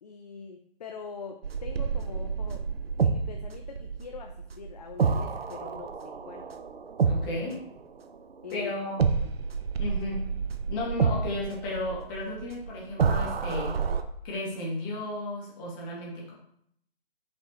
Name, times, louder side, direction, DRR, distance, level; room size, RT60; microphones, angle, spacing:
voice 1, 0.0-2.6 3.0-6.5 8.4-8.7 9.2-9.3, left 5 dB, 40° left, 4 dB, 0.5 m, -43 dB
sound 1, 1.4-8.5 9.0-14.0, right 5 dB, 70° right, 0.7 m, -29 dB
voice 2, 7.0-7.6 8.5-9.0 9.8-10.3 10.7-13.7 14.2-16.3, left 1 dB, 20° left, -5 dB, 1.9 m, -34 dB
6.2 x 5.3 x 3.0 m, 0.69 s
figure-of-eight pair, 145°, 31 cm